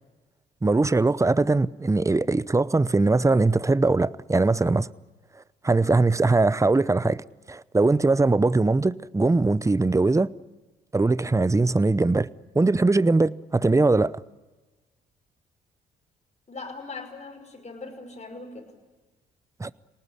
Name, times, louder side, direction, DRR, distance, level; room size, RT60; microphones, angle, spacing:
voice 1, 0.6-4.9 5.6-7.2 7.5-10.3 10.9-12.3 12.5-14.1 19.6-19.7, right 3 dB, 15° right, 0.7 m, -21 dB
voice 2, 16.5-18.7, left 3 dB, 35° left, 5.7 m, -40 dB
25.5 x 19.0 x 9.9 m
hypercardioid pair, 50°, 21 cm